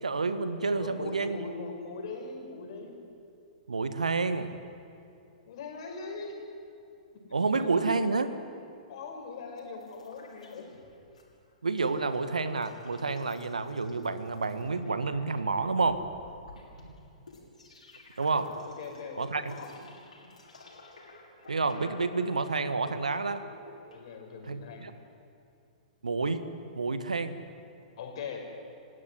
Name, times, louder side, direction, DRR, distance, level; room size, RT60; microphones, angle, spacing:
voice 1, 0.0-1.4 3.7-4.6 7.3-8.3 11.6-16.0 18.2-18.5 19.2-19.6 21.5-23.4 24.5-24.9 26.0-26.4 26.7-27.4, right 3 dB, 80° right, 11 dB, 1.6 m, -29 dB
voice 2, 0.7-3.0 5.5-6.4 7.1-7.2 7.6-7.9 8.9-10.7 18.6-19.7 23.9-24.9 28.0-28.4, left 4 dB, 50° left, 3 dB, 5.8 m, -41 dB
sound 1, 9.6-11.2 11.5-24.0, left 2 dB, 75° left, 6.1 m, -52 dB
29.5 x 16.0 x 9.8 m, 2.6 s
figure-of-eight pair, 110°, 4 cm